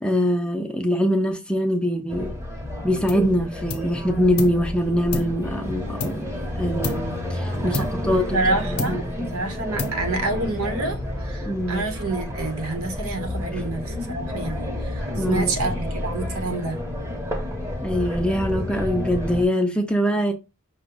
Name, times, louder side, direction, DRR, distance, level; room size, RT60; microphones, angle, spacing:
voice 1, 0.0-2.3 2.8-6.3 6.6-8.4 8.9-9.3 11.5-11.9 13.5-13.6 15.2-15.5 17.8-20.3, equal, 5° left, 0.5 m, -23 dB
sound 1, 2.1-19.5, left 1 dB, 15° right, 1.0 m, -30 dB
sound 2, 3.1-3.4 3.7-4.7 5.1-6.5 6.8-7.2 7.7-8.5 8.8-9.3 9.8-10.3, left 2 dB, 85° left, 0.8 m, -32 dB
voice 2, 7.6-16.8, right 2 dB, 70° right, 1.1 m, -28 dB
5.7 x 2.3 x 3.8 m
head